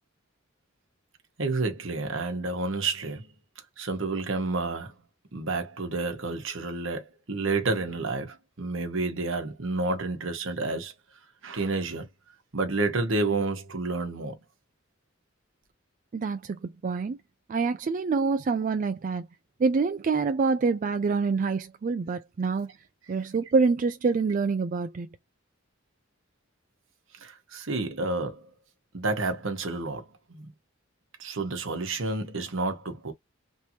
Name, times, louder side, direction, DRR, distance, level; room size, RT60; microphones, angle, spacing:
voice 1, 1.4-3.3 3.8-4.9 5.3-10.9 11.4-12.1 12.5-14.4 27.1-28.5 28.9-30.5 31.2-33.1, right 3 dB, 70° right, 1.1 m, -30 dB
voice 2, 16.1-17.2 17.5-19.3 19.6-22.7 23.1-25.1, right 4 dB, 40° right, 0.3 m, -26 dB
3.3 x 2.9 x 2.7 m
head